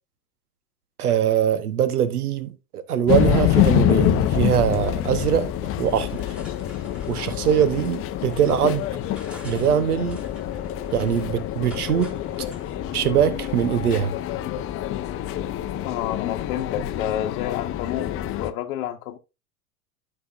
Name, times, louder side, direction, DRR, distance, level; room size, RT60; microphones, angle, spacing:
voice 1, 1.0-5.5 5.8-6.2 7.1-8.9 9.4-10.2 10.9-12.1 12.9-14.1, right 9 dB, 85° right, 1.0 m, -22 dB
sound 1, 3.1-18.5, left 12 dB, 30° left, 0.7 m, -26 dB
sound 2, 5.7-12.7, left 1 dB, ahead, 3.3 m, -47 dB
voice 2, 15.8-19.2, left 11 dB, 65° left, 1.0 m, -30 dB
12.5 x 5.3 x 2.4 m
hypercardioid pair, 95°, 44 cm